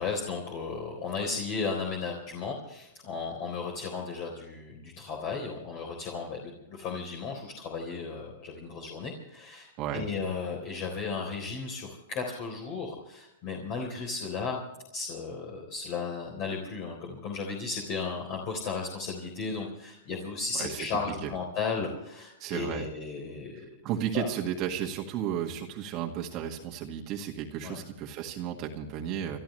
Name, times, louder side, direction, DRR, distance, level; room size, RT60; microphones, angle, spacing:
voice 1, 0.0-14.6 14.9-23.8 24.1-24.3 27.6-27.8, left 4 dB, 40° left, 1 dB, 3.8 m, -35 dB
voice 2, 20.5-20.9 22.4-22.9 23.8-29.4, right 9 dB, 35° right, 1 dB, 1.9 m, -33 dB
29.0 x 13.0 x 3.3 m, 0.87 s
hypercardioid pair, 140°, 0 cm